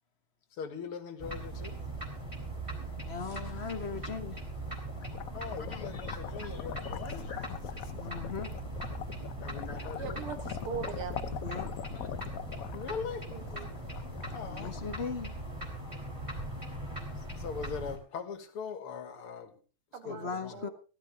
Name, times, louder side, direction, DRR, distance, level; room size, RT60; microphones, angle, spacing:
voice 1, 0.6-1.8 5.3-7.3 9.4-10.2 12.7-13.2 14.3-14.7 17.4-19.5 20.1-20.5, left 6 dB, 85° left, 2.5 m, -40 dB
sound 1, 1.2-18.0, right 1 dB, 15° right, 3.3 m, -40 dB
voice 2, 3.0-4.4 5.6-7.4 7.9-8.5 9.7-9.8 11.4-12.1 14.4-15.3 20.0-20.7, left 5 dB, 35° left, 1.3 m, -40 dB
sound 2, 4.4-15.6, left 10 dB, 65° left, 0.8 m, -42 dB
voice 3, 10.0-11.3 13.3-13.7 19.9-20.7, right 6 dB, 85° right, 2.5 m, -41 dB
17.0 x 13.0 x 3.4 m
omnidirectional pair, 2.4 m